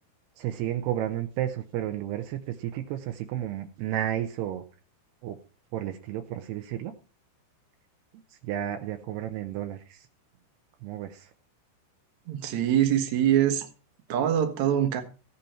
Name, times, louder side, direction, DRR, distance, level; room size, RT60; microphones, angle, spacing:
voice 1, 0.4-4.6 5.2-5.4 5.7-6.9 8.4-10.1 10.8-11.3, right 12 dB, 80° right, 2.8 m, -32 dB
voice 2, 12.3-13.7 14.1-15.0, right 10 dB, 60° right, 2.1 m, -24 dB
15.5 x 8.5 x 4.4 m
omnidirectional pair, 4.9 m